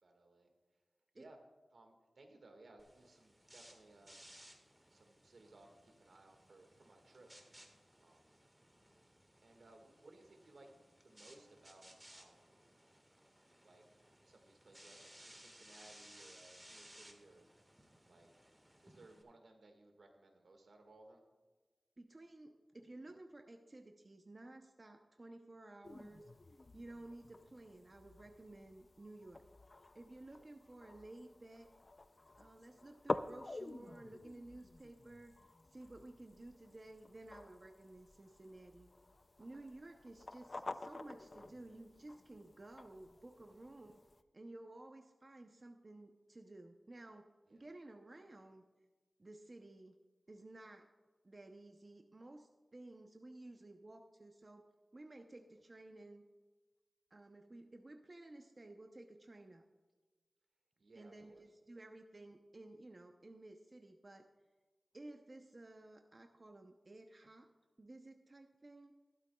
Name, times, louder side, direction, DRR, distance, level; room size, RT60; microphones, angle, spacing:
voice 1, 0.0-0.5 1.1-1.4 1.7-4.2 4.9-7.3 8.0-8.3 9.4-10.7 11.0-12.6 13.6-13.8 14.3-17.5 18.1-18.3 18.8-21.2 30.4-30.5 39.4-39.7 43.5-43.7 47.5-47.7 60.8-61.4, right 2 dB, 75° right, 4 dB, 1.6 m, -62 dB
sound 1, 2.8-19.2, right 1 dB, 10° right, 1.5 m, -61 dB
voice 2, 22.0-26.3 26.7-29.4 29.9-31.7 32.4-35.3 35.7-38.9 39.4-44.0 44.3-48.6 49.2-49.9 50.3-50.9 51.2-54.7 54.9-56.2 57.1-59.7 60.9-64.3 64.9-67.5 67.8-68.9, right 2 dB, 40° right, 4 dB, 0.6 m, -55 dB
sound 2, 25.8-44.2, left 2 dB, 45° left, 0.4 m, -49 dB
15.0 x 12.5 x 2.3 m, 1.3 s
wide cardioid pair, 85°, 0 cm